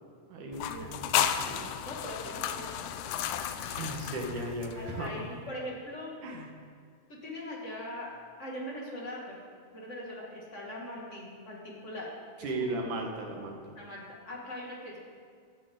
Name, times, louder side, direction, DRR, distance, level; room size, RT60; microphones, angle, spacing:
voice 1, 0.3-1.7 3.5-5.1 6.2-6.5 12.4-13.7, right 2 dB, 70° right, 1 dB, 3.0 m, -37 dB
sound 1, 0.5-5.1, left 10 dB, 85° left, 2.2 m, -33 dB
voice 2, 1.8-4.1 4.8-6.4 7.1-9.4 9.7-12.1 12.4-12.9 13.8-15.0, left 1 dB, 25° left, -3 dB, 2.1 m, -41 dB
16.5 x 11.5 x 3.9 m, 2.1 s
omnidirectional pair, 3.8 m